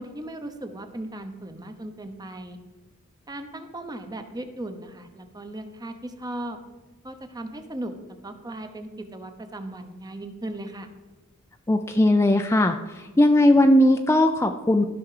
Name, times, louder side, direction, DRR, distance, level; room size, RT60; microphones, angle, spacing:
voice 1, 0.0-2.6 3.3-6.6 7.0-7.9 8.2-10.9, right 1 dB, 20° right, 8 dB, 0.9 m, -37 dB
voice 2, 11.7-14.9, left 1 dB, 10° left, 5 dB, 0.4 m, -19 dB
14.0 x 5.9 x 4.9 m, 1.2 s
head